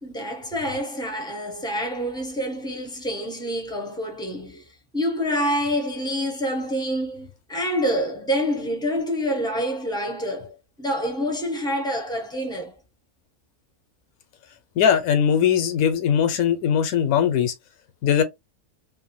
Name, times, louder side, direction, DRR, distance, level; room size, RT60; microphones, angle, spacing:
voice 1, 0.0-12.8, equal, 5° left, 0.4 m, -27 dB
voice 2, 14.8-17.5 18.0-18.2, left 8 dB, 80° left, 1.1 m, -20 dB
2.6 x 2.2 x 2.8 m
omnidirectional pair, 1.5 m